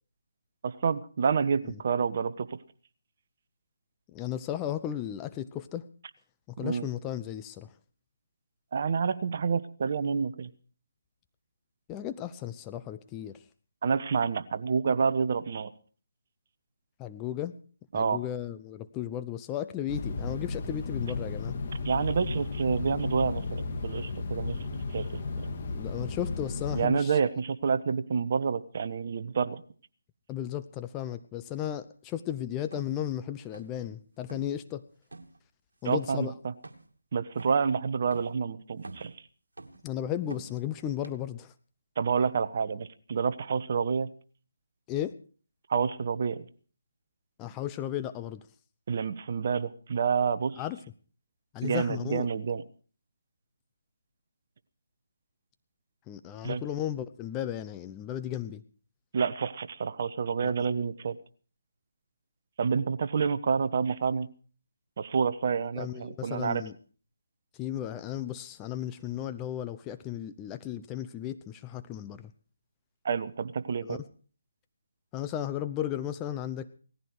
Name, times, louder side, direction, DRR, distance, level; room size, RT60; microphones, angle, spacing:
voice 1, 0.6-2.6 6.6-6.9 8.7-10.5 13.8-15.7 17.9-18.2 21.8-25.5 26.7-29.6 35.8-36.3 37.1-39.1 42.0-44.1 45.7-46.4 48.9-50.6 51.6-52.6 56.4-56.6 59.1-61.1 62.6-64.3 65.0-66.6 73.0-74.0, right 6 dB, 45° right, 11 dB, 1.2 m, -28 dB
voice 2, 4.1-5.8 6.5-7.7 11.9-13.4 17.0-17.5 17.9-21.6 25.7-27.3 30.3-34.8 35.8-36.3 39.8-41.5 44.9-45.1 47.4-48.4 50.6-50.8 51.5-52.3 56.1-58.6 60.4-60.7 65.8-66.7 67.6-72.3 73.8-74.0 75.1-76.8, left 11 dB, 15° left, 10 dB, 0.8 m, -35 dB
sound 1, 19.9-26.9, left 3 dB, 35° left, 2.5 m, -34 dB
sound 2, 32.7-32.9 33.5-33.9 34.2-34.5 35.1-35.4 35.9-36.1 36.6-37.0 37.4-37.7 38.1-38.4 38.8-39.2 39.6-39.9 40.3-40.6 41.0-41.1, right 3 dB, 75° right, 2.5 m, -46 dB
18.5 x 14.5 x 4.7 m, 0.42 s
figure-of-eight pair, 155°, 0 cm